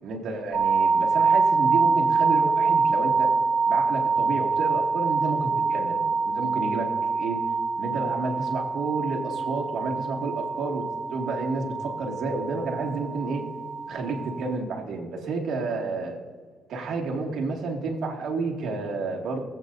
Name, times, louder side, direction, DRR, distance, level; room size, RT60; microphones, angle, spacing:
voice 1, 0.0-3.3 3.7-7.4 7.8-10.8 11.1-13.5 13.9-16.2 16.7-19.4, right 3 dB, 75° right, 0 dB, 2.3 m, -30 dB
sound 1, 0.5-14.6, right 4 dB, 40° right, 1.4 m, -25 dB
22.0 x 8.5 x 2.7 m, 1.5 s
cardioid pair, 85°, 0 cm